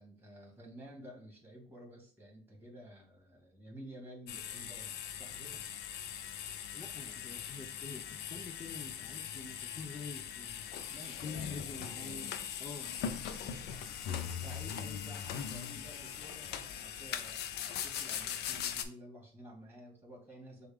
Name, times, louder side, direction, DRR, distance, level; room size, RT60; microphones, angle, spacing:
voice 1, 0.0-5.6 10.9-11.6 13.6-20.7, equal, 15° right, -1 dB, 2.1 m, -52 dB
sound 1, 4.3-18.8, left 8 dB, 75° left, 0.5 m, -40 dB
voice 2, 6.7-10.7 11.2-12.3 12.6-12.9, left 4 dB, 20° left, 4 dB, 0.5 m, -46 dB
6.2 x 2.4 x 3.5 m, 0.44 s
cardioid pair, 110°, 17 cm